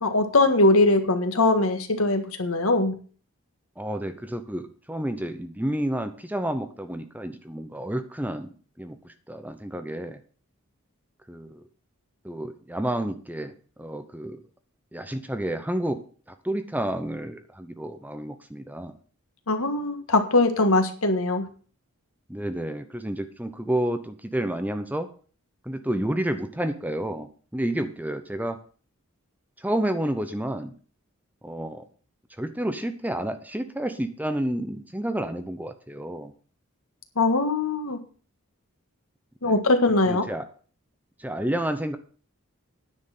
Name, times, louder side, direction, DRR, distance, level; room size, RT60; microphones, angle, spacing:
voice 1, 0.0-2.9 19.5-21.4 37.2-38.0 39.4-40.3, left 2 dB, 75° left, 7 dB, 1.7 m, -21 dB
voice 2, 3.8-10.2 11.3-11.6 12.2-13.5 13.8-14.4 14.9-16.0 16.4-18.9 22.3-25.1 25.6-27.3 27.5-28.6 29.6-30.7 31.4-31.8 32.4-36.3 39.4-39.6 39.9-40.5 41.2-42.0, right 1 dB, 5° right, 8 dB, 0.8 m, -30 dB
9.9 x 6.4 x 7.5 m, 0.41 s
head